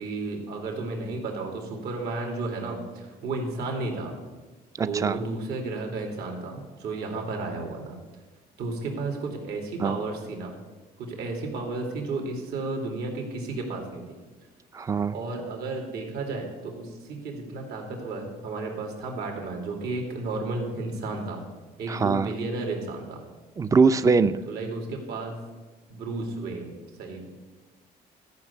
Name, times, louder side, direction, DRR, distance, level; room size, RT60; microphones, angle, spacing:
voice 1, 0.0-4.1 4.8-8.0 8.6-10.6 11.0-14.2 15.1-21.4 21.8-23.2 24.5-25.4 25.9-27.4, right 3 dB, 75° right, 1 dB, 2.6 m, -33 dB
voice 2, 4.8-5.2 9.8-10.0 14.7-15.1 21.9-22.3 23.6-24.4, right 4 dB, 20° right, 12 dB, 0.5 m, -22 dB
13.5 x 5.9 x 8.4 m, 1.3 s
cardioid pair, 110°, 17 cm